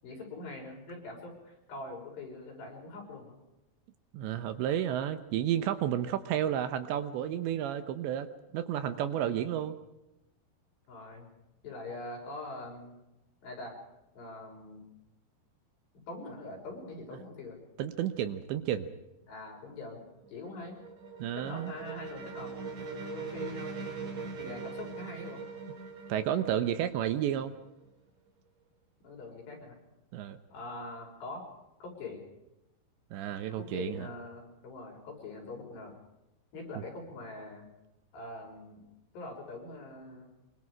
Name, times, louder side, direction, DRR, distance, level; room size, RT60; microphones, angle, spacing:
voice 1, 0.0-3.4 8.9-9.5 10.9-11.3 11.6-12.9 13.4-13.8 14.1-14.8 16.1-17.6 19.3-20.8 21.3-22.5 22.8-23.8 24.4-25.4 29.0-29.8 30.5-31.4 31.8-32.2 33.6-36.0 36.5-37.7 38.1-38.8 39.1-40.3, left 2 dB, 60° left, 0 dB, 8.2 m, -43 dB
voice 2, 4.1-9.8 17.8-18.9 21.2-21.7 26.1-27.5 30.1-30.4 33.1-34.1, right 10 dB, 75° right, 10 dB, 3.1 m, -31 dB
sound 1, 20.1-27.8, right 5 dB, 45° right, 4.0 m, -42 dB
25.0 x 24.5 x 5.0 m, 0.92 s
omnidirectional pair, 5.5 m